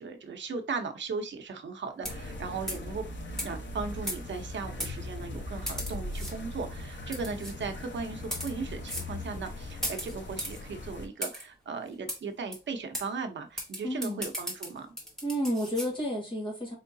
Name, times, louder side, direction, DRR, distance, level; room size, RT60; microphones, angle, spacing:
voice 1, 0.0-3.0 3.4-14.9, right 4 dB, 80° right, 0.8 m, -37 dB
sound 1, 2.0-11.1, left 2 dB, 75° left, 1.0 m, -40 dB
sound 2, 2.0-2.3 2.7-2.9 3.4-3.5 4.1-4.4 4.8-4.9 5.7-6.3 7.1-7.5 8.2-8.5 8.9-9.1 9.8-10.6 11.2-11.4 12.1-12.2 12.5-12.6 12.9-13.1 13.6-15.9, equal, ahead, 1.2 m, -36 dB
voice 2, 13.8-14.3 15.2-16.7, equal, 25° left, 1.7 m, -31 dB
4.6 x 3.6 x 2.7 m
wide cardioid pair, 180°, 19 cm